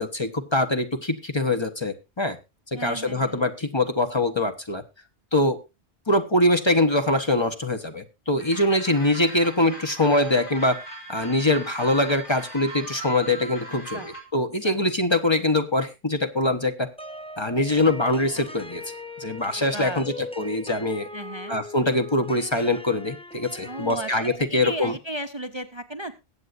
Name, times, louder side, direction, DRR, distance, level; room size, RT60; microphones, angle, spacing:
voice 1, 0.0-2.4 2.7-4.8 5.3-5.6 6.1-10.8 11.1-16.9 17.4-18.8 19.2-21.1 21.5-24.9, left 1 dB, 25° left, 7 dB, 1.0 m, -23 dB
voice 2, 2.7-3.5 13.9-14.1 14.6-14.8 19.5-20.1 21.1-21.6 23.6-26.1, right 1 dB, 30° right, 9 dB, 0.6 m, -35 dB
sound 1, 8.4-14.2, right 1 dB, 55° left, 3.1 m, -39 dB
sound 2, 17.0-24.4, left 2 dB, 5° left, 0.6 m, -40 dB
22.0 x 8.2 x 2.6 m, 0.25 s
omnidirectional pair, 1.1 m